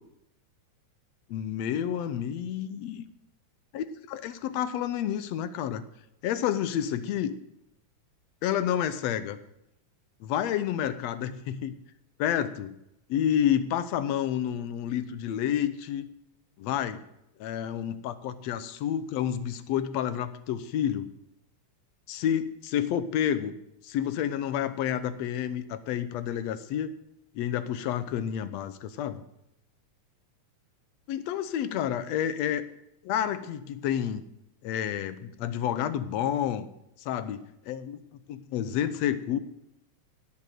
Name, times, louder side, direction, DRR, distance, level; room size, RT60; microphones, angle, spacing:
voice 1, 1.3-3.1 3.8-5.8 6.2-7.3 8.4-9.4 10.2-11.7 12.2-12.7 13.1-16.1 16.6-17.0 17.4-21.1 22.1-23.6 23.8-26.9 27.4-29.2 31.1-32.6 33.0-34.2 34.6-36.7 37.0-38.0 38.3-39.4, left 10 dB, 70° left, 13 dB, 2.0 m, -29 dB
17.5 x 7.9 x 7.8 m, 0.83 s
omnidirectional pair, 3.4 m